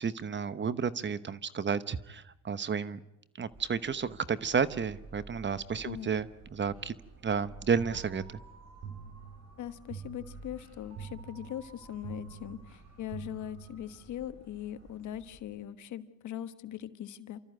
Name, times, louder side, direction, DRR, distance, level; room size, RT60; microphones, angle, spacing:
voice 1, 0.0-3.0 3.4-6.9 7.2-8.4, right 6 dB, 40° right, 15 dB, 1.1 m, -32 dB
sound 1, 3.5-15.4, right 2 dB, 60° right, 7.4 m, -54 dB
sound 2, 7.8-14.1, right 7 dB, 75° right, 4.4 m, -47 dB
voice 2, 9.6-17.4, left 11 dB, 75° left, 12 dB, 1.3 m, -40 dB
29.0 x 13.5 x 9.2 m, 0.87 s
cardioid pair, 90°, 30 cm